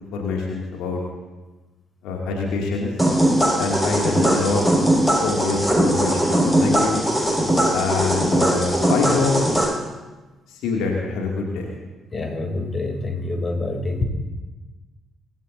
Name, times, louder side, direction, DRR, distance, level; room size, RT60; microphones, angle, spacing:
voice 1, 0.1-1.0 2.0-2.9 3.6-4.6 5.2-7.0 7.7-9.3 10.5-11.7, left 4 dB, 65° left, -1 dB, 2.4 m, -25 dB
sound 1, 3.0-9.6, right 1 dB, 5° left, 6.2 m, -20 dB
voice 2, 12.1-14.0, left 2 dB, 35° left, 3 dB, 3.0 m, -26 dB
24.5 x 16.5 x 2.7 m, 1.2 s
figure-of-eight pair, 40°, 0 cm